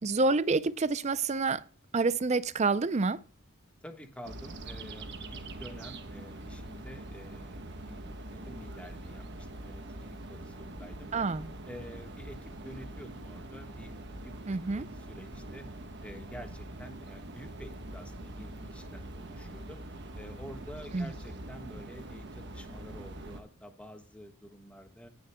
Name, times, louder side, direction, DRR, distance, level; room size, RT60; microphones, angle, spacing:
voice 1, 0.0-1.6 1.9-3.2 11.1-11.5 14.5-14.9 20.9-21.1, right 3 dB, 35° right, 0.5 m, -28 dB
voice 2, 3.8-8.0 8.4-11.3 11.7-14.4 14.7-15.7 16.0-25.1, equal, 5° left, 1.3 m, -49 dB
sound 1, 4.2-23.4, right 1 dB, 55° right, 1.3 m, -44 dB
18.0 x 6.7 x 2.2 m
head